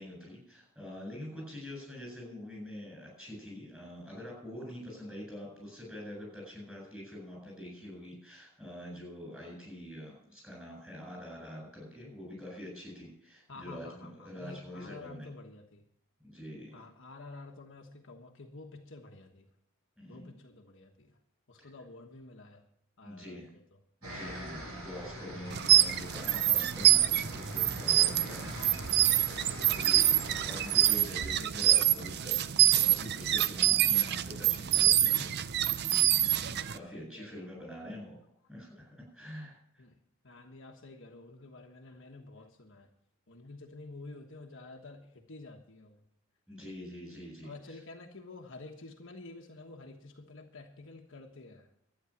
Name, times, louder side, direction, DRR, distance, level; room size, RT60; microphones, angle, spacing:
voice 1, 0.0-15.3 16.2-16.8 20.0-20.3 23.0-23.5 24.0-28.7 29.7-35.3 36.3-38.2 38.5-39.8 46.5-47.5, left 1 dB, 5° right, -2 dB, 7.7 m, -45 dB
voice 2, 13.5-15.8 16.7-19.5 20.1-21.2 21.5-22.6 23.0-23.6 25.1-26.1 28.5-29.5 29.9-30.0 35.0-36.3 36.6-37.5 39.8-40.0 40.2-42.9 43.3-46.0 47.4-51.7, left 2 dB, 60° left, 1 dB, 1.4 m, -50 dB
sound 1, 24.0-30.9, equal, 85° right, 8.0 m, -43 dB
sound 2, 25.5-36.8, right 12 dB, 50° right, 0.5 m, -26 dB
12.5 x 9.7 x 7.3 m, 0.69 s
head